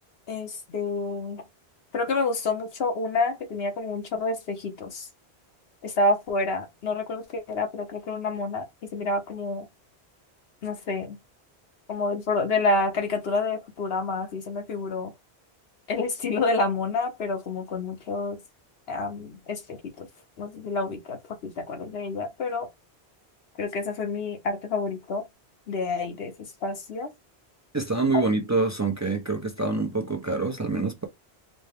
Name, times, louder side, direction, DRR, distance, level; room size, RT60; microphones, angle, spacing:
voice 1, 0.3-1.4 1.9-5.1 5.8-9.7 10.6-11.2 11.9-15.1 15.9-18.4 18.9-20.1 20.4-22.7 23.6-25.3 25.7-26.3 26.6-27.1 28.1-28.2, left 3 dB, 70° left, 1.0 m, -28 dB
voice 2, 27.7-31.1, right 3 dB, 25° right, 0.4 m, -26 dB
4.1 x 2.1 x 3.4 m
omnidirectional pair, 1.1 m